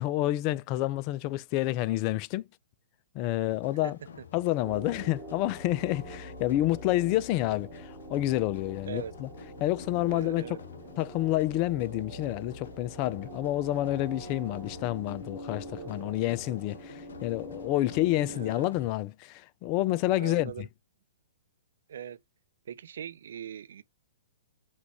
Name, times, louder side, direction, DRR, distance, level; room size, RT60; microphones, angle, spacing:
voice 1, 0.0-2.4 3.1-4.0 4.3-9.3 9.6-10.4 11.0-20.5, left 15 dB, 35° left, 0.3 m, -29 dB
sound 1, 3.5-18.9, left 7 dB, 60° left, 0.7 m, -51 dB
sound 2, 4.6-18.5, equal, ahead, 1.6 m, -44 dB
voice 2, 10.1-10.6 18.3-18.7 20.2-20.7 21.9-22.2 22.7-23.8, right 8 dB, 55° right, 0.4 m, -40 dB
5.8 x 2.3 x 3.4 m
figure-of-eight pair, 115°, 0 cm